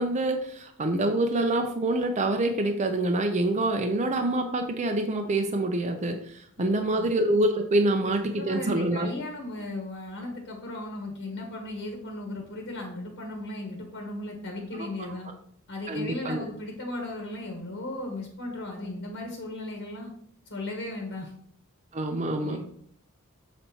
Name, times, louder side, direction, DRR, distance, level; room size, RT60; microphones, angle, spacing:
voice 1, 0.0-9.1 15.9-16.4 21.9-22.6, right 2 dB, 30° right, 5 dB, 0.6 m, -26 dB
voice 2, 6.6-7.1 8.0-15.3 15.7-20.1 20.5-21.3 22.4-22.6, left 2 dB, 55° left, 1 dB, 1.3 m, -36 dB
7.0 x 4.1 x 4.3 m, 0.63 s
head